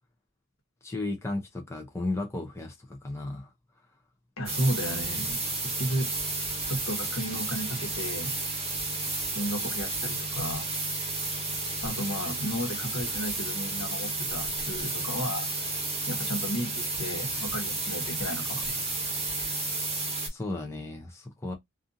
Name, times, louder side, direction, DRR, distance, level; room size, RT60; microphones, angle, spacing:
voice 1, 0.8-3.5 20.3-21.5, left 2 dB, 15° left, 0.5 m, -34 dB
voice 2, 4.4-6.1 6.7-8.3 9.3-10.7 11.8-15.5 16.1-18.8, equal, 75° left, 1.1 m, -33 dB
sound 1, 4.5-20.3, right 3 dB, 30° right, 1.0 m, -32 dB
2.6 x 2.4 x 2.5 m
head